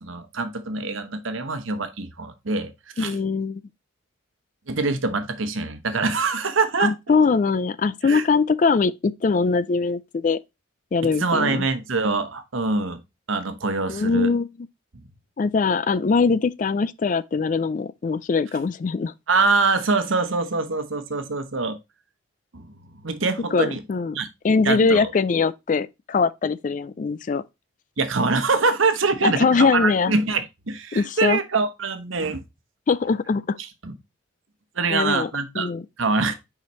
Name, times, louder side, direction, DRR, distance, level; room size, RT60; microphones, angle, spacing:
voice 1, 0.0-2.7 3.0-3.1 4.7-7.2 8.0-8.2 11.2-13.0 13.3-14.3 19.3-21.8 22.5-23.8 24.1-24.3 24.6-25.1 28.0-32.4 33.6-33.9 34.7-35.7 36.0-36.3, right 3 dB, 80° right, 1.0 m, -24 dB
voice 2, 3.0-3.6 6.8-10.4 10.9-11.7 13.9-14.5 15.4-19.1 23.5-24.2 24.4-27.4 29.2-30.1 30.9-31.4 32.9-33.6 34.9-35.3 35.6-35.8, left 4 dB, 40° left, 0.3 m, -22 dB
6.9 x 5.0 x 3.1 m
head